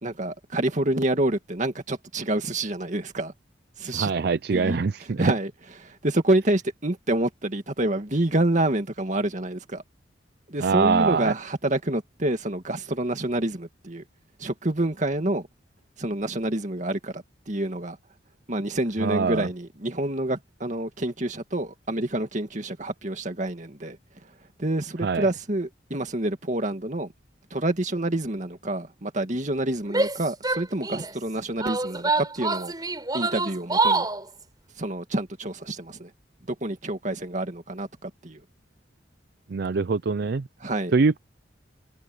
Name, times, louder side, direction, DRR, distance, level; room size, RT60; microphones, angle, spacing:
voice 1, 0.0-3.3 3.8-4.1 4.5-4.8 5.2-5.5 5.8-9.8 10.5-14.0 14.4-15.5 16.0-18.0 18.5-24.0 24.6-27.1 27.5-32.7 33.1-34.1 34.8-36.1 36.5-38.4 40.6-40.9, right 1 dB, 40° right, 2.1 m, -27 dB
voice 2, 3.9-5.3 10.6-11.3 19.0-19.5 25.0-25.3 39.5-40.5 40.9-41.2, right 4 dB, 60° right, 0.5 m, -23 dB
Female speech woman speaking / Yell, 29.9-31.1 31.6-34.2, right 3 dB, 20° right, 4.8 m, -26 dB
head